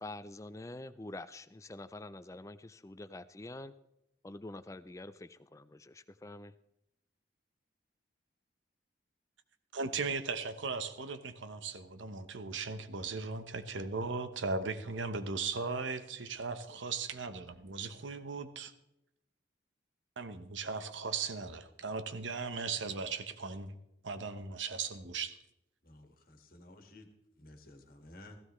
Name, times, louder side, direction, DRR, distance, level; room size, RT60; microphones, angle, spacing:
voice 1, 0.0-3.7 4.2-6.5, left 2 dB, 15° left, 14 dB, 0.4 m, -46 dB
voice 2, 9.7-18.7 20.2-23.7 24.0-25.4, right 4 dB, 90° right, 10 dB, 0.9 m, -37 dB
voice 3, 25.8-27.1 27.4-28.4, left 1 dB, 50° left, 4 dB, 1.7 m, -54 dB
16.5 x 15.0 x 3.1 m, 0.83 s
head